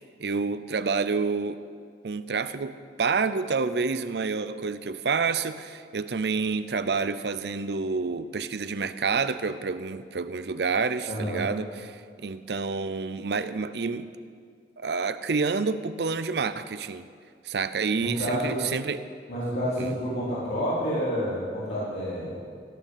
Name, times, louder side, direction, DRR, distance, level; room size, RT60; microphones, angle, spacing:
voice 1, 0.2-1.6 2.0-14.1 14.8-17.1 17.4-19.0 19.8-19.9, right 4 dB, 70° right, 13 dB, 0.6 m, -28 dB
voice 2, 11.0-11.4 18.0-18.6 19.3-22.4, equal, 85° left, -11 dB, 4.5 m, -29 dB
15.5 x 6.5 x 9.1 m, 2.1 s
head